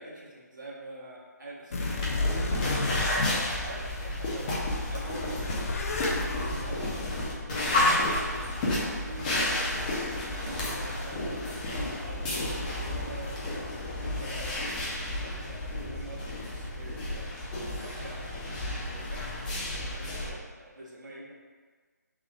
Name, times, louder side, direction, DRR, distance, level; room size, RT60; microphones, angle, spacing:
voice 1, 0.0-4.5 4.9-5.8 6.3-9.8 10.4-13.4 14.0-17.4 17.8-21.3, right 1 dB, 90° right, -5 dB, 1.3 m, -46 dB
sound 1, 1.7-4.4 4.9-8.2, left 3 dB, 50° left, 0.5 m, -33 dB
sound 2, 1.8-20.3, left 1 dB, 25° left, 0.8 m, -31 dB
4.5 x 3.6 x 2.6 m, 1.5 s
figure-of-eight pair, 155°, 10 cm